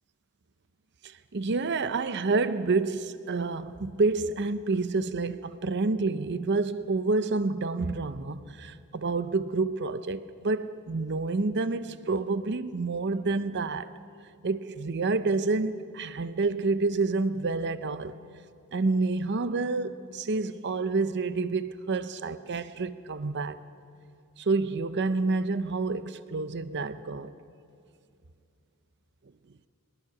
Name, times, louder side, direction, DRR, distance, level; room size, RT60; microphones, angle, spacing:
voice 1, 1.0-13.9 14.4-18.2 18.7-23.6 24.4-27.3, right 3 dB, 50° right, 0.7 m, -28 dB
21.5 x 20.0 x 6.0 m
head